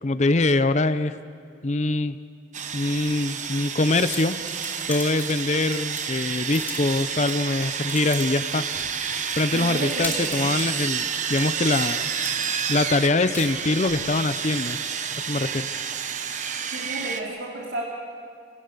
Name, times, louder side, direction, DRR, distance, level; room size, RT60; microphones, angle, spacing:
voice 1, 0.0-1.2 1.6-2.2 2.7-4.4 4.9-8.6 9.4-12.1 12.7-14.8 15.2-15.7, left 2 dB, 40° left, 12 dB, 0.7 m, -23 dB
Sawing, 2.5-17.2, right 7 dB, 45° right, 1.0 m, -30 dB
sound 1, 4.0-14.1, left 2 dB, 10° left, 3.8 m, -39 dB
voice 2, 9.5-10.5 16.7-17.8, right 2 dB, 80° right, -3 dB, 3.0 m, -32 dB
29.5 x 18.5 x 6.8 m, 2.3 s
head